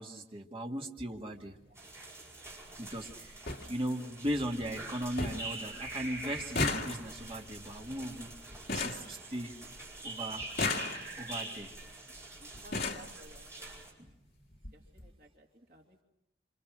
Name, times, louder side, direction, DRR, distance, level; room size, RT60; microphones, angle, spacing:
voice 1, 0.0-1.6 2.8-3.4 3.7-8.3 8.7-9.5 10.0-10.4 11.2-11.7, equal, 30° right, 2 dB, 2.0 m, -37 dB
sound 1, 1.3-1.5 2.8-2.9 3.1-3.2 3.5-3.6 4.1-4.6 4.8-4.9 5.2-5.6 5.8-9.8 10.4-11.4 12.2-12.3 12.5-13.1 14.1-14.2 14.5-14.7 15.0-15.1, left 3 dB, 60° left, 2.4 m, -36 dB
sound 2, 1.8-13.9, right 2 dB, 15° right, 7.0 m, -45 dB
voice 2, 11.0-11.4 12.4-13.7 14.7-16.0, equal, 50° right, 0 dB, 2.8 m, -57 dB
28.0 x 27.5 x 6.2 m, 0.88 s
head